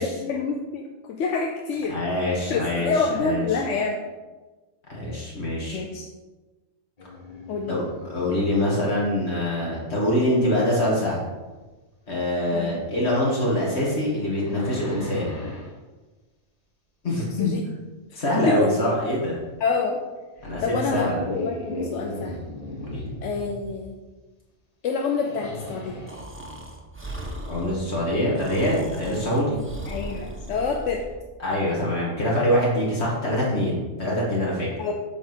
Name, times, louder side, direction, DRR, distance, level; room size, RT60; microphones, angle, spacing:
voice 1, 0.0-2.0 2.5-4.0 5.7-6.1 7.5-7.8 12.5-12.7 17.4-17.6 18.1-18.7 19.6-20.0 20.6-22.4 23.2-24.0 24.8-26.0 29.2-29.3 29.9-31.0 34.8-34.9, left 4 dB, 90° left, 2 dB, 1.0 m, -27 dB
voice 2, 1.9-2.9 3.2-3.5 4.9-5.8 7.7-11.2 12.1-15.4 17.0-17.5 18.2-19.4 20.4-21.2 22.8-23.0 27.5-29.6 31.4-34.7, left 1 dB, 65° left, -5 dB, 2.6 m, -24 dB
sound 1, 7.0-8.6 11.6-11.7 12.5-12.7 13.3-15.7 19.5-19.6 20.4-23.8 25.0-26.3, left 1 dB, 35° left, 1.3 m, -37 dB
Breathing, 26.1-31.2, right 1 dB, 10° right, 0.9 m, -38 dB
8.1 x 3.8 x 6.2 m, 1.2 s
omnidirectional pair, 1.2 m